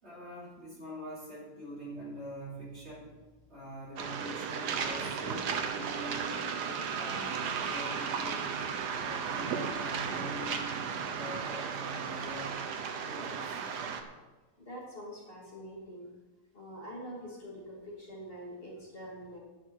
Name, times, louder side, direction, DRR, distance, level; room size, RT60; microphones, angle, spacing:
voice 1, 0.0-3.2 3.5-6.4 6.9-8.5 9.0-10.7 10.9-12.6 13.0-13.4, right 1 dB, 40° right, -5 dB, 3.5 m, -44 dB
Waves surf, 4.0-14.0, right 6 dB, 80° right, 1.6 m, -35 dB
voice 2, 14.6-16.1 16.5-19.4, equal, 35° left, -4 dB, 2.8 m, -45 dB
11.5 x 10.5 x 4.7 m, 1.2 s
omnidirectional pair, 1.7 m